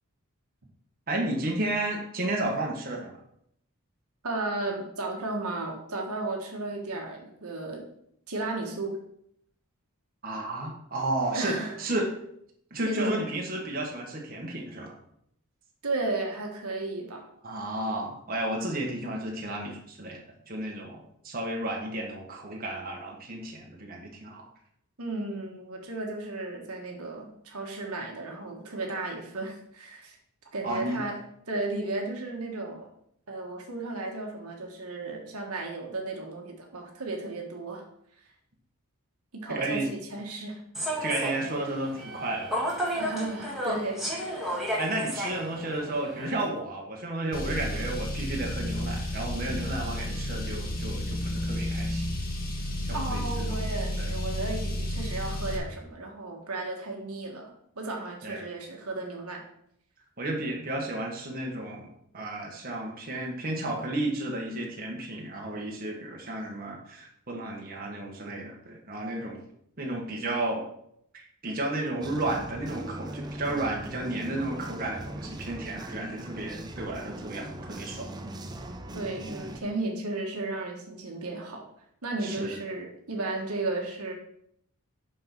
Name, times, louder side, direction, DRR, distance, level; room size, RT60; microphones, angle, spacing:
voice 1, 1.1-3.1 10.2-12.1 12.7-14.9 17.4-20.2 20.5-24.4 30.6-31.0 39.5-39.9 41.0-42.6 44.8-52.1 52.8-53.6 54.0-54.1 58.2-58.4 60.2-61.9 62.1-69.4 69.8-70.6 71.1-78.1 82.2-82.6, right 1 dB, 40° right, -1 dB, 1.3 m, -32 dB
voice 2, 4.2-7.8 8.3-9.0 11.3-11.8 12.8-13.3 15.8-17.3 25.0-30.2 30.5-31.2 31.5-32.9 33.3-37.8 39.3-40.6 42.9-44.6 52.9-57.5 57.8-59.4 78.9-81.7 82.0-84.1, right 2 dB, 80° right, 0 dB, 1.5 m, -34 dB
Human voice / Subway metro underground, 40.7-46.5, equal, ahead, 1.8 m, -33 dB
Car, 47.3-55.6, left 1 dB, 40° left, 1.4 m, -32 dB
sound 1, 72.0-79.6, right 1 dB, 20° right, 0.6 m, -40 dB
5.7 x 5.5 x 5.9 m, 0.72 s
head